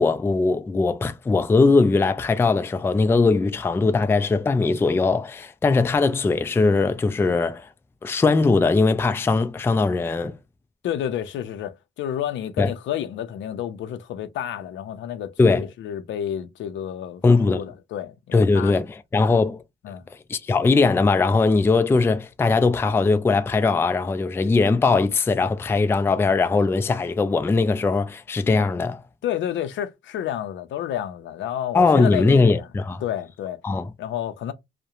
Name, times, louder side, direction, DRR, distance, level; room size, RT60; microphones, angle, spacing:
voice 1, 0.0-7.7 8.0-10.4 12.6-12.7 15.4-15.7 17.2-17.6 18.3-19.6 20.3-29.0 31.7-33.0 33.6-33.9, left 3 dB, 10° left, 0.3 m, -20 dB
voice 2, 10.8-18.7 19.8-20.0 29.2-32.7 33.0-33.6 34.0-34.5, left 10 dB, 70° left, 0.5 m, -30 dB
2.8 x 2.1 x 2.3 m
cardioid pair, 90°, 20 cm